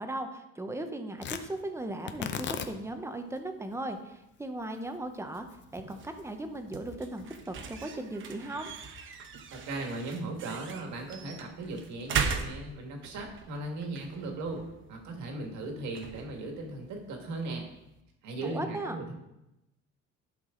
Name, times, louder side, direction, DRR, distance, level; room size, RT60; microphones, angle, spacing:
voice 1, 0.0-8.7 18.4-19.0, right 1 dB, 10° right, 6 dB, 0.7 m, -37 dB
Tearing, 1.2-9.5, left 8 dB, 40° left, 0.6 m, -43 dB
sound 1, 5.3-18.0, right 6 dB, 45° right, 0.8 m, -40 dB
voice 2, 9.5-14.6 14.9-17.6 18.2-19.1, right 2 dB, 75° right, 2 dB, 2.0 m, -37 dB
12.0 x 5.9 x 3.8 m, 0.92 s
cardioid pair, 160°, 29 cm